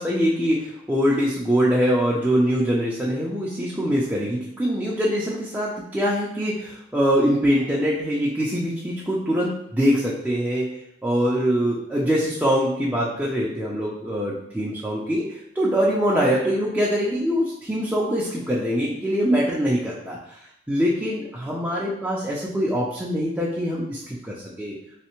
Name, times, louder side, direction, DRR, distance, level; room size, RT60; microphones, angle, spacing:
voice 1, 0.0-10.7 11.0-24.8, equal, 5° right, -6 dB, 0.5 m, -23 dB
3.3 x 3.2 x 3.0 m, 0.76 s
head